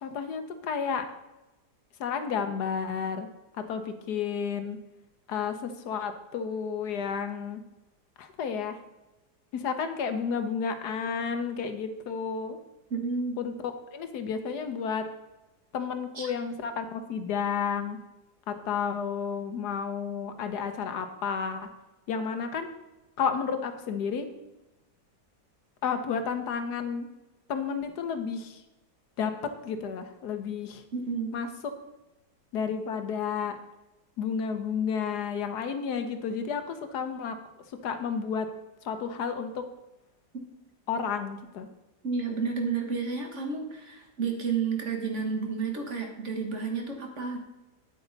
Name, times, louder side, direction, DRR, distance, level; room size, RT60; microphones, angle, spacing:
voice 1, 0.0-1.1 2.0-3.3 3.7-4.8 5.3-7.6 8.2-8.8 9.5-12.6 13.4-15.1 15.7-18.0 18.5-21.7 22.1-22.7 23.2-24.3 25.8-27.1 27.5-28.6 29.2-30.8 31.3-31.5 32.5-33.6 34.2-37.4 37.7-38.5 38.8-39.6 40.9-41.7, left 6 dB, 75° left, 8 dB, 1.4 m, -31 dB
voice 2, 12.9-13.4 16.2-16.3 30.9-31.3 40.3-40.4 42.0-47.4, right 5 dB, 45° right, 3 dB, 1.6 m, -31 dB
9.1 x 8.3 x 4.0 m, 0.99 s
omnidirectional pair, 1.8 m